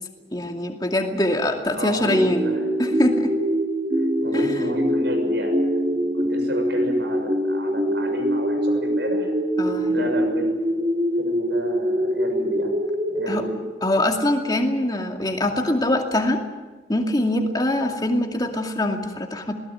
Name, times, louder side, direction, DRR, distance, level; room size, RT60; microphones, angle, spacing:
voice 1, 0.3-2.5 2.8-3.3 4.3-4.7 9.6-9.9 13.3-13.5 13.8-16.4 16.9-19.5, left 1 dB, 20° left, 3 dB, 2.4 m, -23 dB
voice 2, 1.7-2.7 4.2-9.3 9.9-12.7 13.1-13.5, right 1 dB, 70° right, 4 dB, 6.7 m, -32 dB
sound 1, 2.1-14.5, equal, 25° right, 2.0 m, -24 dB
22.0 x 18.5 x 9.0 m, 1.3 s
head